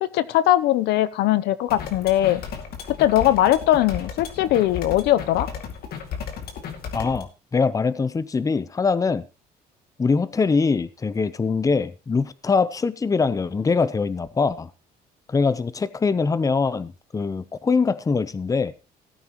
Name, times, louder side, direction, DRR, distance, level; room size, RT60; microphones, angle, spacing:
voice 1, 0.0-2.4 3.0-5.5, left 13 dB, 80° left, 0.7 m, -20 dB
sound 1, 1.7-7.2, left 7 dB, 65° left, 2.3 m, -34 dB
voice 2, 6.9-9.3 10.0-14.7 15.3-18.7, left 4 dB, 20° left, 0.7 m, -23 dB
17.0 x 9.1 x 3.0 m
cardioid pair, 110°, 17 cm